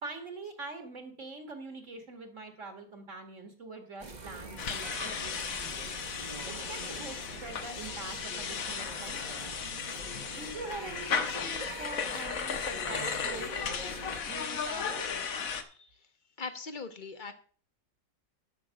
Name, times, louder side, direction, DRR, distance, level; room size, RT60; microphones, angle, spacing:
voice 1, 0.0-5.9 6.4-9.5 10.3-13.5 14.2-15.1, right 3 dB, 50° right, 5 dB, 1.9 m, -44 dB
sound 1, 4.0-14.2, right 3 dB, 30° right, 1.1 m, -45 dB
sound 2, 4.6-15.6, left 6 dB, 60° left, 1.4 m, -35 dB
voice 2, 16.4-17.3, left 4 dB, 35° left, 9 dB, 1.0 m, -41 dB
11.5 x 6.4 x 6.3 m, 0.43 s
omnidirectional pair, 1.8 m